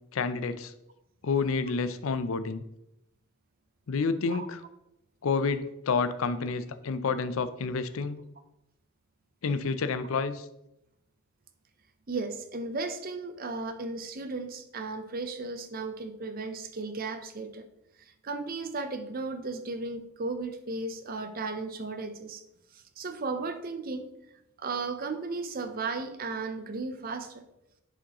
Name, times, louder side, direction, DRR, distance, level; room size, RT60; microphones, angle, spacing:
voice 1, 0.1-0.7 1.2-2.6 3.9-4.6 5.2-8.2 9.4-10.5, left 4 dB, 65° left, 13 dB, 0.5 m, -29 dB
voice 2, 12.1-17.6 18.2-22.4 22.7-24.1 24.6-27.4, right 3 dB, 40° right, 8 dB, 0.6 m, -35 dB
10.0 x 5.0 x 3.0 m, 0.86 s
head